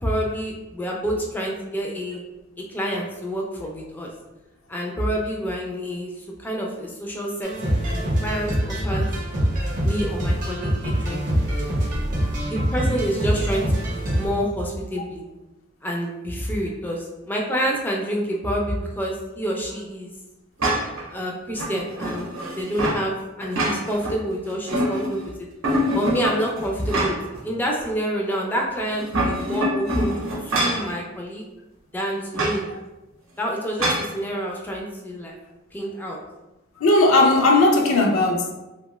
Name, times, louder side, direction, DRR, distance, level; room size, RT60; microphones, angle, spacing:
voice 1, 0.0-2.2 2.7-4.1 4.7-9.1 9.8-11.2 12.4-15.2 15.8-20.1 21.1-22.3 22.6-25.3 25.9-31.4 31.9-32.7 33.4-35.3 35.7-36.2, equal, 10° left, 0.4 m, -28 dB
sound 1, 7.4-14.3, equal, 40° right, 0.7 m, -24 dB
sound 2, 20.6-21.1 21.5-23.0 23.4-24.1 24.5-25.2 25.6-27.4 27.8-27.9 28.9-30.9 32.3-32.6 33.8-34.1, equal, 75° right, 0.7 m, -25 dB
voice 2, 36.8-38.5, left 2 dB, 75° left, 0.4 m, -17 dB
2.6 x 2.2 x 3.0 m
head